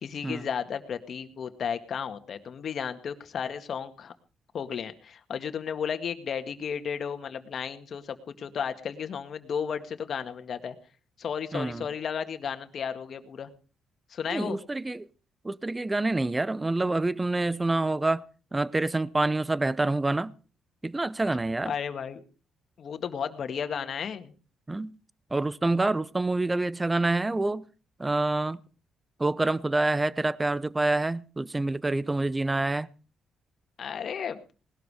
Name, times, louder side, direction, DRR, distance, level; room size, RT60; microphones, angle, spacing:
voice 1, 0.0-4.1 4.5-10.8 11.2-13.5 14.1-14.6 21.7-22.2 22.8-24.3 33.8-34.4, left 7 dB, 55° left, 2.0 m, -33 dB
voice 2, 11.5-11.9 14.3-15.1 15.4-18.2 18.5-20.3 20.8-21.7 24.7-25.0 25.3-27.6 28.0-28.6 29.2-32.9, right 2 dB, 15° right, 0.8 m, -27 dB
19.5 x 12.5 x 5.0 m
cardioid pair, 90°, 0 cm